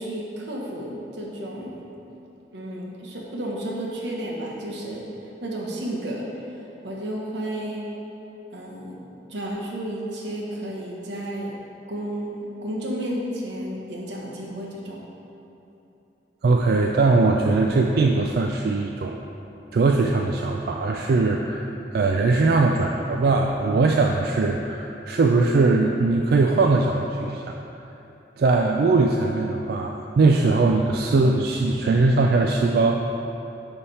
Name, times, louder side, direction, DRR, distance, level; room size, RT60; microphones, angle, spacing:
voice 1, 0.0-1.8 2.5-5.0 5.4-6.3 6.8-7.8 8.5-9.0 9.3-11.5 11.9-15.0, right 1 dB, 85° right, -2 dB, 1.1 m, -32 dB
voice 2, 16.4-19.2 19.7-27.4 28.4-33.0, right 3 dB, 60° right, 1 dB, 0.3 m, -20 dB
9.9 x 3.5 x 4.2 m, 3.0 s
head